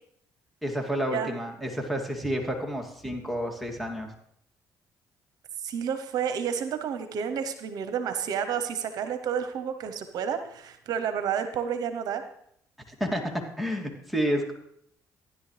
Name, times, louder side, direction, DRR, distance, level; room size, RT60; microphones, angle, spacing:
voice 1, 0.6-4.1 13.0-13.2 13.6-14.5, equal, ahead, 2 dB, 2.6 m, -30 dB
voice 2, 5.6-12.2, right 7 dB, 70° right, 9 dB, 0.9 m, -30 dB
15.0 x 10.5 x 3.3 m, 0.71 s
supercardioid pair, 70°, 7 cm